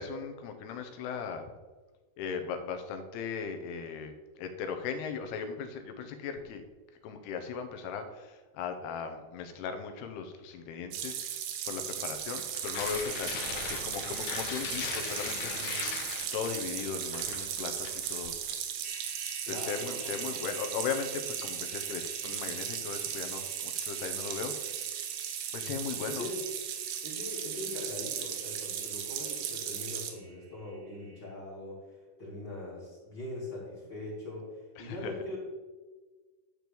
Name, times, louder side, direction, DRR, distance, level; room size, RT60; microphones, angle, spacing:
voice 1, 0.0-1.5 2.2-4.1 4.4-6.6 7.0-11.2 11.7-15.9 16.3-18.3 19.4-24.5 25.5-26.3 34.8-35.1, left 6 dB, 80° left, 6 dB, 2.9 m, -38 dB
sound 1, 10.9-30.1, right 9 dB, 90° right, 3.1 m, -37 dB
Tearing, 12.3-18.5, left 6 dB, 65° left, 2.2 m, -39 dB
sound 2, 18.8-31.3, right 3 dB, 55° right, 2.3 m, -52 dB
voice 2, 19.4-20.3 25.6-26.4 27.0-31.8 32.2-35.4, left 1 dB, 30° left, -4 dB, 2.9 m, -41 dB
12.0 x 4.6 x 6.9 m, 1.3 s
omnidirectional pair, 4.6 m